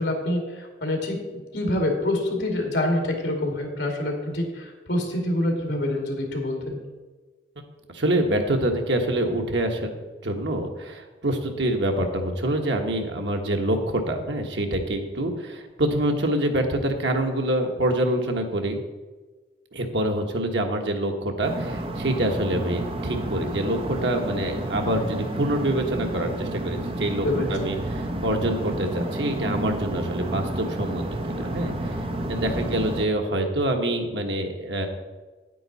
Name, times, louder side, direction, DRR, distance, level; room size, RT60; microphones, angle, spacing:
voice 1, 0.0-6.8 27.2-27.5, left 1 dB, 75° left, 2 dB, 2.3 m, -26 dB
voice 2, 7.9-9.9 10.2-18.8 19.7-31.9 32.3-34.9, right 1 dB, 90° right, 3 dB, 1.3 m, -26 dB
sound 1, 21.4-33.1, right 1 dB, 30° right, 0.7 m, -30 dB
9.1 x 9.1 x 4.1 m, 1.3 s
head